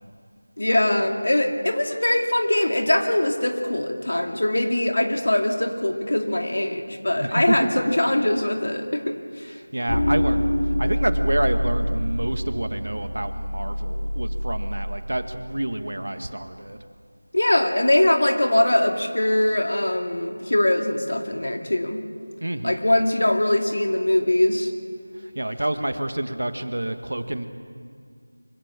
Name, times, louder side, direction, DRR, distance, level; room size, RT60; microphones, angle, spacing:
voice 1, 0.6-9.5 17.3-22.0 22.6-24.7, left 1 dB, 60° left, 4 dB, 2.4 m, -22 dB
voice 2, 7.2-7.7 9.5-10.5 10.8-16.8 22.4-22.8 25.1-27.5, right 1 dB, 65° right, 8 dB, 1.7 m, -28 dB
sound 1, 9.9-15.0, equal, 40° left, 3.0 m, -25 dB
24.5 x 16.5 x 7.4 m, 2.2 s
figure-of-eight pair, 175°, 0 cm